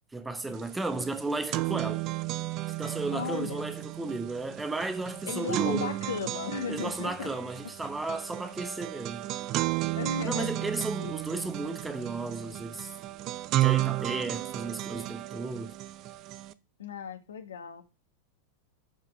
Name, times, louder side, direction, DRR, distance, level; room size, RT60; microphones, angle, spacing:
voice 1, 0.1-2.0 2.8-5.9 6.7-9.3 10.2-13.0 13.6-15.7, right 3 dB, 10° right, 1.2 m, -34 dB
sound 1, 0.6-0.7 1.0-16.5, right 16 dB, 35° right, 0.5 m, -33 dB
voice 2, 3.1-3.7 5.2-7.3 9.9-10.5 11.0-11.2 16.8-17.8, left 5 dB, 65° left, 1.4 m, -35 dB
11.5 x 4.9 x 4.6 m
figure-of-eight pair, 90°, 0 cm